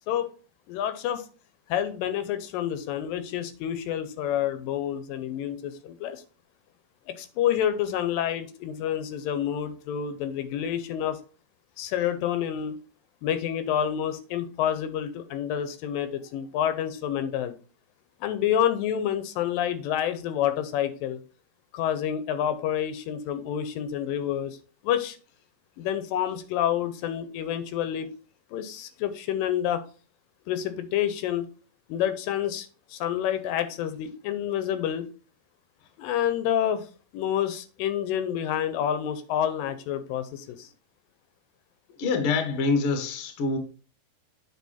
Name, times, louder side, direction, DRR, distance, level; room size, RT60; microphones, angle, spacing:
voice 1, 0.7-1.2 1.7-6.2 7.1-11.2 11.8-12.8 13.2-17.6 18.2-21.2 21.7-24.6 24.8-25.2 25.8-28.1 28.5-29.8 30.5-31.5 31.9-35.1 36.0-36.9 37.1-40.7, left 10 dB, 80° left, 2.3 m, -28 dB
voice 2, 42.0-43.6, left 4 dB, 55° left, 1.6 m, -25 dB
8.2 x 4.9 x 4.2 m
omnidirectional pair, 4.0 m